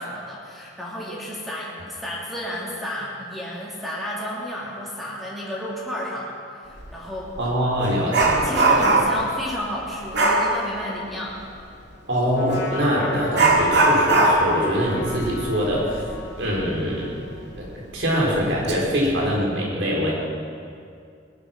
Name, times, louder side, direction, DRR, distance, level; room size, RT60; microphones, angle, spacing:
voice 1, 0.0-6.3 6.6-7.3 8.3-11.4, equal, ahead, -7 dB, 2.9 m, -32 dB
Dog, 6.8-6.9 7.4-9.3 10.1-10.5 12.5-12.6 13.3-16.6 16.9-17.0 17.6-17.7 18.3-18.7 19.1-19.4, right 2 dB, 60° right, 2.2 m, -20 dB
voice 2, 7.4-8.8 12.1-16.0 16.4-17.1 17.6-17.7 17.9-20.1, equal, 80° right, -4 dB, 4.7 m, -23 dB
Trumpet, 12.3-17.6, left 2 dB, 65° left, 3.3 m, -37 dB
20.5 x 11.0 x 6.1 m, 2.3 s
head